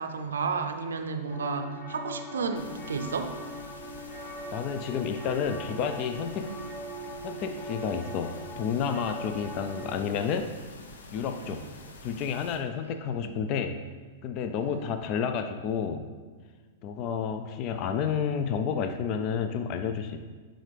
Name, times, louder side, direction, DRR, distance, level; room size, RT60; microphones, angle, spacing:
voice 1, 0.0-3.4 6.5-6.6 11.4-11.6 12.9-13.3 14.6-14.9, right 5 dB, 85° right, 7 dB, 0.5 m, -33 dB
sound 1, 1.3-9.9, right 1 dB, 30° left, 1.1 m, -41 dB
sound 2, 2.6-12.6, left 2 dB, 80° left, 0.8 m, -48 dB
voice 2, 4.5-6.5 7.2-10.5 11.1-11.7 12.0-13.8 14.2-16.1 16.8-20.2, left 7 dB, 45° left, 8 dB, 0.4 m, -30 dB
11.0 x 3.8 x 3.4 m, 1.4 s
hypercardioid pair, 110°, 0 cm